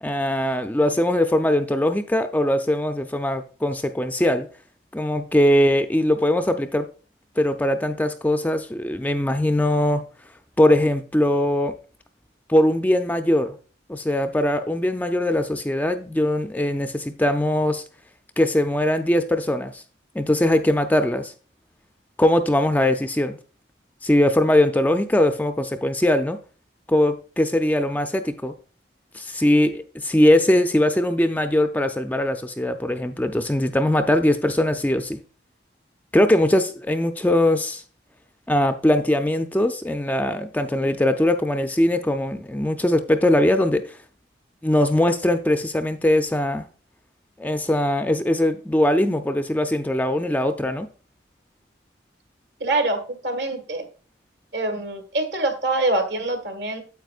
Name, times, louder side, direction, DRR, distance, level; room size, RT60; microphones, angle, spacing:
voice 1, 0.0-4.5 4.9-6.9 7.4-10.1 10.6-11.8 12.5-13.6 13.9-17.8 18.4-19.8 20.2-21.3 22.2-23.4 24.0-26.4 26.9-28.5 29.1-35.2 36.1-37.8 38.5-44.0 44.6-46.7 47.4-50.9, left 1 dB, 10° left, 0.4 m, -21 dB
voice 2, 52.6-53.8 54.5-56.8, right 2 dB, 70° right, 1.7 m, -25 dB
9.2 x 8.2 x 2.4 m
head